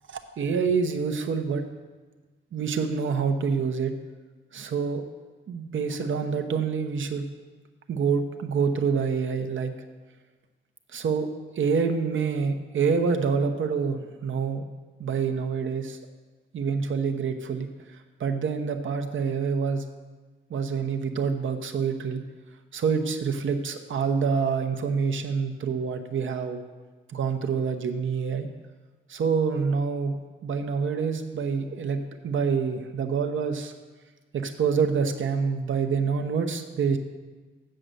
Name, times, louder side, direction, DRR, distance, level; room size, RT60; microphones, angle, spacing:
voice 1, 0.1-1.7 2.5-3.9 4.5-5.0 5.5-7.3 7.9-9.7 10.9-11.3 11.6-14.6 15.0-16.0 16.5-17.7 18.2-19.8 20.5-22.2 22.7-26.6 27.1-28.5 29.1-30.2 30.4-33.7 34.3-37.0, right 5 dB, 80° right, 6 dB, 0.9 m, -26 dB
7.7 x 7.6 x 6.8 m, 1.3 s
wide cardioid pair, 110°, 20 cm